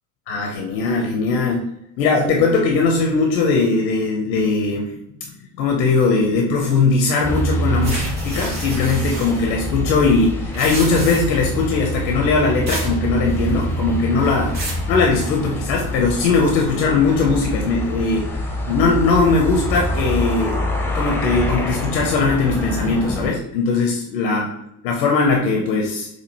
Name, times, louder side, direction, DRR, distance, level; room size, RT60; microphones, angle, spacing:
voice 1, 0.3-1.7 2.0-4.9 5.6-14.6 14.9-18.4 18.7-20.6 20.9-24.5 24.8-26.1, left 4 dB, 90° left, 1 dB, 0.7 m, -19 dB
sound 1, 7.2-23.3, equal, 5° left, 0.5 m, -25 dB
sound 2, 7.8-9.5 10.4-11.5 12.7-13.0 13.3-13.8 14.2-14.9, right 2 dB, 80° right, 1.4 m, -31 dB
4.3 x 2.5 x 2.8 m, 0.79 s
hypercardioid pair, 70°, 50 cm